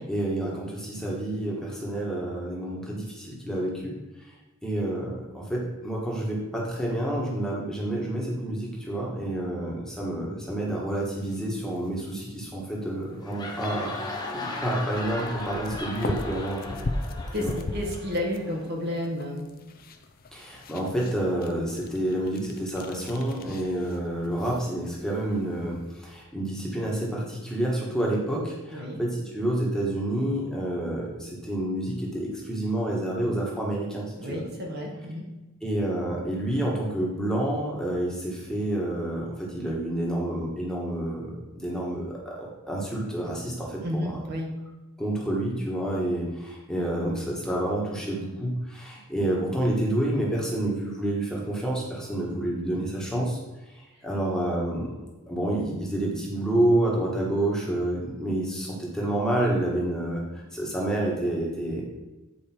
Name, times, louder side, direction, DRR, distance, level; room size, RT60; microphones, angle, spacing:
voice 1, 0.0-3.9 4.6-14.0 14.4-16.6 17.4-17.5 20.3-34.4 35.6-44.2 45.0-53.4 53.7-54.9 55.3-60.2 60.5-61.8, right 1 dB, 5° left, -4 dB, 1.5 m, -29 dB
sound 1, 10.9-26.2, left 2 dB, 40° left, 0.6 m, -40 dB
sound 2, 13.1-18.7, left 2 dB, 20° left, 1.0 m, -37 dB
voice 2, 17.3-19.5 28.7-29.0 34.2-35.3 43.8-44.6, left 1 dB, 45° right, 0 dB, 1.3 m, -31 dB
9.0 x 4.9 x 4.4 m, 1.1 s
head